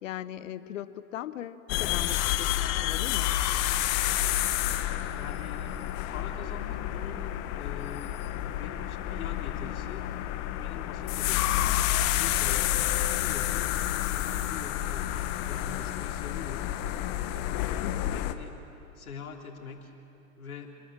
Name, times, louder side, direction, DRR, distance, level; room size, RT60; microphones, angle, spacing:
voice 1, 0.0-3.4 17.8-18.1, left 12 dB, 65° left, 15 dB, 1.0 m, -39 dB
sound 1, 1.7-18.3, left 13 dB, 40° left, 1.3 m, -29 dB
voice 2, 5.1-5.8 6.1-10.1 10.6-12.8 13.1-16.7 17.3-18.5 18.9-19.9 20.4-20.7, left 6 dB, 85° left, 1 dB, 3.4 m, -44 dB
27.5 x 20.0 x 7.5 m, 2.9 s
hypercardioid pair, 115°, 42 cm